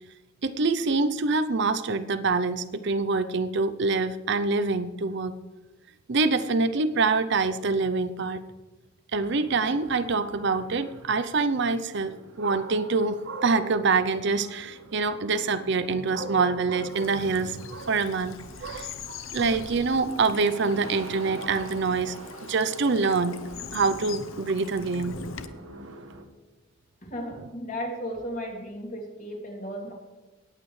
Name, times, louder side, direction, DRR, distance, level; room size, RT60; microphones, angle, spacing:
voice 1, 0.4-5.3 6.1-8.4 9.1-22.2 22.4-23.4 23.7-25.2, right 4 dB, 55° right, 11 dB, 0.6 m, -25 dB
sound 1, 9.3-26.2, right 2 dB, 85° right, 1.3 m, -46 dB
Bird vocalization bird call bird song / Stream, 16.8-25.5, left 5 dB, 70° left, 0.7 m, -42 dB
voice 2, 27.1-29.9, equal, 40° left, 0 dB, 2.8 m, -35 dB
18.5 x 8.3 x 3.2 m, 1.2 s
head